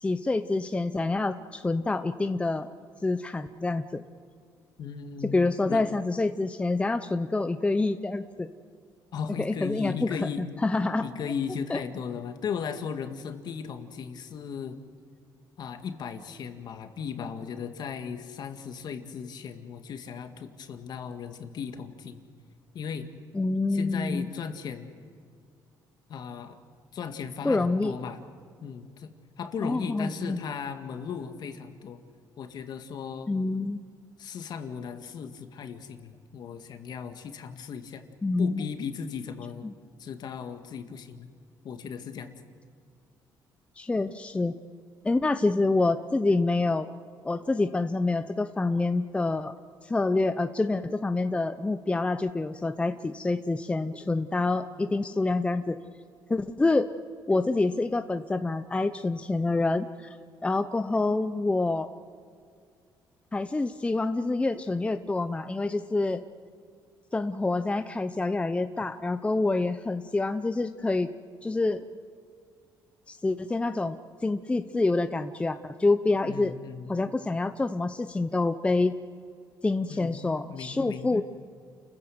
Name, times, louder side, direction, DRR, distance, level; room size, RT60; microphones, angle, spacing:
voice 1, 0.0-2.7 3.0-4.0 5.3-8.5 9.4-10.3 10.6-11.1 11.7-11.8 23.3-24.3 27.4-27.9 29.6-30.4 33.3-33.8 38.2-38.7 39.6-39.7 43.8-44.6 45.0-46.9 47.2-49.5 49.8-55.8 56.3-56.9 57.3-59.9 60.4-61.9 63.3-66.2 67.1-71.1 71.4-71.8 73.1-76.5 76.9-78.9 79.6-81.2, left 3 dB, 15° left, 9 dB, 0.7 m, -27 dB
voice 2, 4.8-5.4 5.6-5.8 9.1-10.5 11.0-14.8 15.6-22.3 22.7-23.1 23.7-24.9 26.1-26.6 26.9-28.2 28.6-32.0 32.4-33.3 34.2-38.1 38.4-39.7 40.0-41.3 41.6-42.4 76.2-76.9 79.9-81.2, left 6 dB, 60° left, 7 dB, 2.0 m, -36 dB
29.5 x 15.0 x 7.9 m, 2.2 s
cardioid pair, 110°, 8 cm